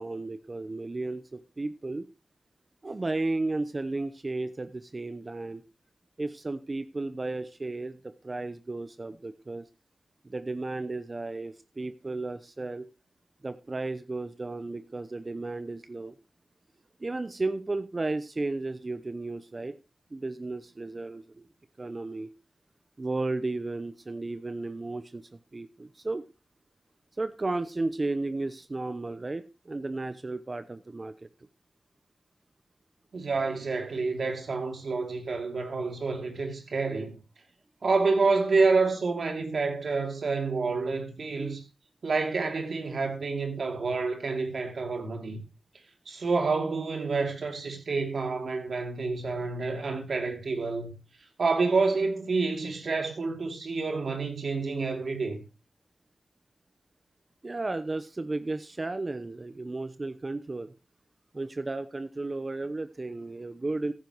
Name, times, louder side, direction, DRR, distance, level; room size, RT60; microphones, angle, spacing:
voice 1, 0.0-2.1 2.8-5.6 6.2-9.7 10.2-12.9 13.4-16.1 17.0-19.7 20.1-21.5 21.8-22.3 23.0-26.2 27.2-31.3 57.4-60.7 61.3-63.9, right 2 dB, 40° right, 0.9 m, -34 dB
voice 2, 33.1-37.2 37.8-41.6 42.0-45.4 46.1-50.9 51.4-55.4, right 4 dB, 70° right, 2.8 m, -28 dB
15.0 x 10.0 x 3.1 m
cardioid pair, 40°, 0 cm